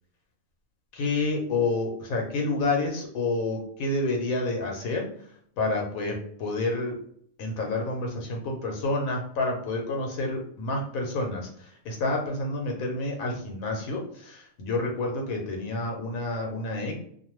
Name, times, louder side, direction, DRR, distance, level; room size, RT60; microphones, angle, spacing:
voice 1, 0.9-5.1 5.6-7.0 7.4-17.0, left 2 dB, 80° left, 1 dB, 1.1 m, -29 dB
2.6 x 2.2 x 3.0 m, 0.63 s
omnidirectional pair, 1.4 m